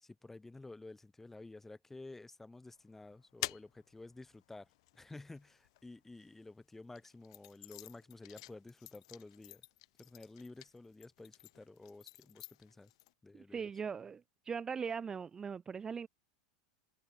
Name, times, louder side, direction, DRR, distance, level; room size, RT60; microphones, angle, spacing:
voice 1, 0.0-9.7 10.0-12.9 13.2-13.7, left 2 dB, 10° left, 1.1 m, -52 dB
sound 1, 2.7-6.2 6.8-13.1, left 19 dB, 70° left, 0.4 m, -49 dB
voice 2, 13.3-16.1, right 6 dB, 20° right, 0.4 m, -40 dB
hypercardioid pair, 115°, 3 cm